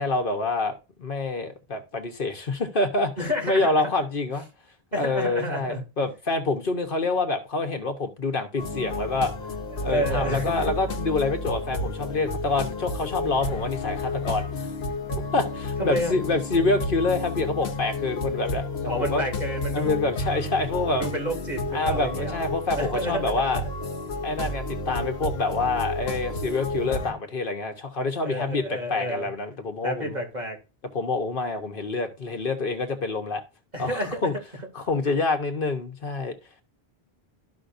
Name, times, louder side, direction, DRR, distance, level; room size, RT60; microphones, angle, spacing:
voice 1, 0.0-3.1 3.4-4.5 5.0-9.3 9.8-14.7 15.3-19.2 19.7-21.1 21.7-23.6 24.2-30.2 30.9-33.4 33.8-34.3 34.7-36.3, left 3 dB, 60° left, 1.2 m, -27 dB
voice 2, 3.2-3.9 4.9-5.8 9.7-10.7 15.8-16.1 18.8-19.9 21.0-22.4 22.7-23.3 28.2-29.3 29.8-30.6 33.7-34.2, equal, 45° right, 2.8 m, -30 dB
sound 1, 8.6-27.1, left 2 dB, 80° left, 1.2 m, -31 dB
13.0 x 5.7 x 2.6 m
omnidirectional pair, 1.0 m